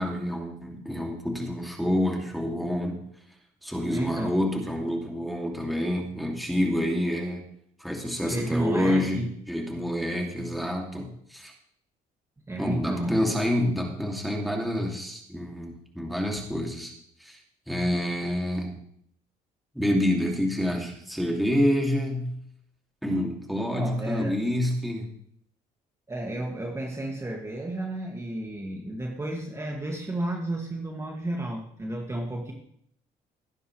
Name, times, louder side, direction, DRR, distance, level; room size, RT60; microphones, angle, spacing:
voice 1, 0.0-3.1 3.6-7.4 7.8-11.5 12.6-16.9 17.2-17.4 17.7-18.8 19.7-22.4 23.0-25.1, left 1 dB, ahead, 0 dB, 2.6 m, -28 dB
voice 2, 3.9-4.4 8.2-9.3 12.5-13.2 23.7-24.4 26.1-32.5, right 1 dB, 15° right, -1 dB, 2.2 m, -32 dB
18.0 x 9.7 x 3.3 m, 0.69 s
cardioid pair, 110°, 17 cm